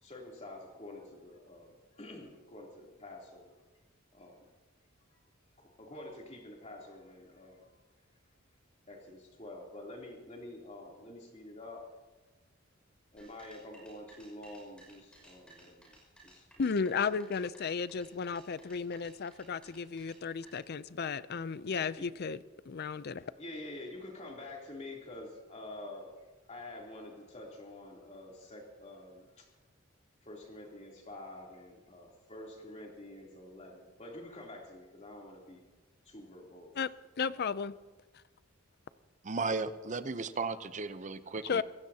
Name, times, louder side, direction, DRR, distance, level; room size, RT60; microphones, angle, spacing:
voice 1, 0.0-3.6 4.1-4.4 5.6-7.7 8.9-11.9 13.1-16.0 16.2-16.6 22.0-22.1 23.2-26.1 26.5-29.5 30.2-35.7 36.0-36.7, left 1 dB, 35° left, -1 dB, 3.2 m, -48 dB
sound 1, 13.2-20.5, right 1 dB, 5° left, 5.8 m, -59 dB
voice 2, 16.6-22.4 22.7-23.3 36.8-36.9 37.2-37.8 41.4-41.6, left 5 dB, 50° left, 16 dB, 0.5 m, -34 dB
voice 3, 39.2-41.6, right 4 dB, 35° right, 12 dB, 0.7 m, -35 dB
25.5 x 16.5 x 2.9 m, 1.2 s
head